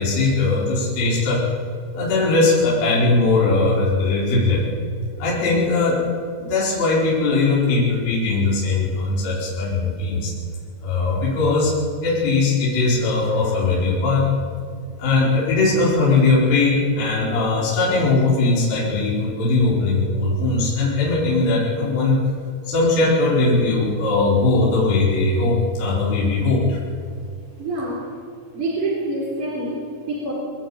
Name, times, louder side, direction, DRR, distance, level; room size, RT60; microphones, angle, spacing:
voice 1, 0.0-1.5 1.9-4.6 5.2-6.1 6.4-10.3 10.8-11.7 12.0-14.3 15.0-22.2 22.6-26.8, left 3 dB, 50° left, -6 dB, 6.4 m, -19 dB
voice 2, 27.6-28.1 28.5-30.3, right 2 dB, 30° right, -3 dB, 3.9 m, -26 dB
23.0 x 17.5 x 9.0 m, 2.3 s
omnidirectional pair, 5.5 m